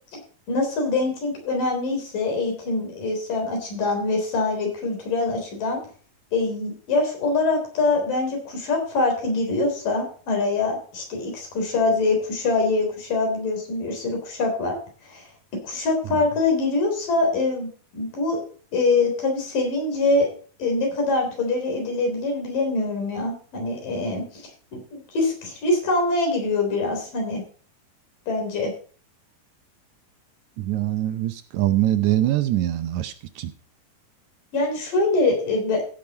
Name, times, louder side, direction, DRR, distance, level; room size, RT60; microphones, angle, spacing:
voice 1, 0.5-5.8 6.3-14.8 15.1-15.2 15.6-18.4 18.7-20.3 20.6-27.4 28.3-28.7 34.5-35.8, left 3 dB, 85° left, 2 dB, 5.3 m, -24 dB
voice 2, 30.6-33.5, right 13 dB, 75° right, 10 dB, 1.9 m, -23 dB
15.0 x 6.5 x 4.2 m, 0.42 s
omnidirectional pair, 3.7 m